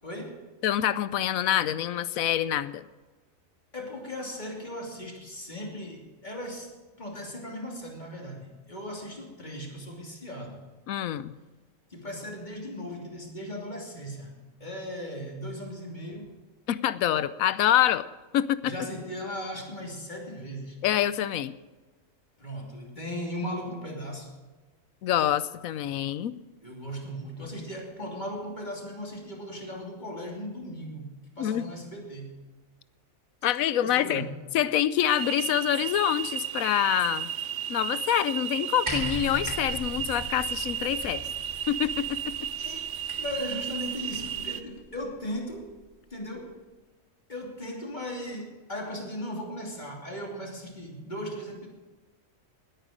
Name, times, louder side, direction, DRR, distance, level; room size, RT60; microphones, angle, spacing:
voice 1, 0.0-0.4 3.7-10.6 11.9-14.3 14.6-16.4 18.6-20.8 22.4-24.3 26.6-32.3 33.8-34.3 42.6-42.9 43.1-45.8 46.1-46.6 47.3-51.7, equal, 35° left, 0 dB, 3.0 m, -37 dB
voice 2, 0.6-2.8 10.9-11.4 16.7-18.0 18.3-18.7 20.8-21.5 25.0-26.3 31.4-31.7 33.4-34.2 34.5-37.3 37.7-41.2 41.7-42.1, left 11 dB, 90° left, 15 dB, 1.1 m, -26 dB
sound 1, 35.1-44.6, right 10 dB, 65° right, 1.0 m, -34 dB
sound 2, 38.9-44.5 45.5-45.6, right 1 dB, 20° right, 2.9 m, -39 dB
19.5 x 9.1 x 5.1 m, 1.3 s
omnidirectional pair, 1.4 m